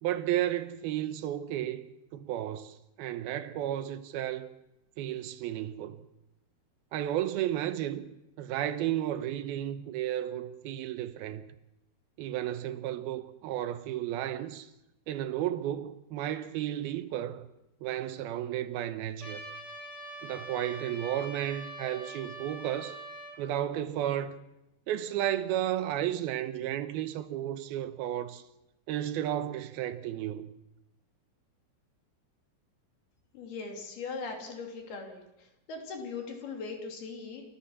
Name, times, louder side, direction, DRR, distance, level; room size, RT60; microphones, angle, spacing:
voice 1, 0.0-4.5 5.0-6.0 6.9-8.1 8.4-11.5 12.2-14.7 15.1-17.5 17.8-19.5 20.2-23.0 23.4-24.4 24.9-28.4 28.9-30.6, right 12 dB, 80° right, 2.8 m, -33 dB
Trumpet, 19.2-23.4, right 1 dB, 10° left, 3.3 m, -44 dB
voice 2, 33.3-35.2 35.7-37.4, left 4 dB, 80° left, 4.8 m, -39 dB
28.5 x 13.0 x 7.3 m
omnidirectional pair, 4.4 m